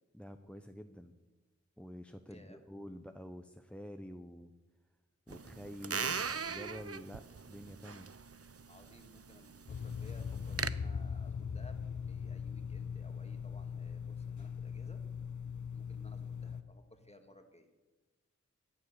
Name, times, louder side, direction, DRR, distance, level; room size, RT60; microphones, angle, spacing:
voice 1, 0.1-1.1 1.8-4.5 5.3-8.1, equal, 5° left, 8 dB, 0.7 m, -48 dB
voice 2, 2.3-2.6 5.4-5.6 8.7-15.0 15.7-17.7, left 1 dB, 20° left, 5 dB, 2.1 m, -59 dB
sound 1, 5.3-10.7, right 5 dB, 50° right, 0.6 m, -40 dB
sound 2, 9.7-16.6, left 6 dB, 75° left, 0.8 m, -40 dB
14.5 x 9.9 x 8.0 m, 1.2 s
wide cardioid pair, 55°, 30 cm